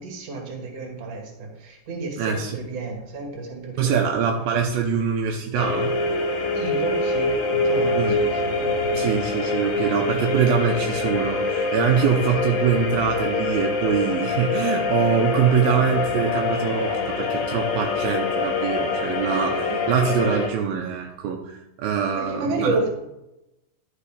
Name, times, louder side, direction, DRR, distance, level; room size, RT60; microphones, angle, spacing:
voice 1, 0.0-4.0 6.5-9.0 22.0-22.9, right 3 dB, 45° right, 1 dB, 2.6 m, -31 dB
voice 2, 2.2-2.6 3.8-6.0 8.0-8.2 8.9-22.8, right 7 dB, 85° right, 2 dB, 2.1 m, -24 dB
sound 1, 5.6-20.5, left 3 dB, 65° left, 2.8 m, -25 dB
11.5 x 6.6 x 5.0 m, 0.90 s
omnidirectional pair, 5.3 m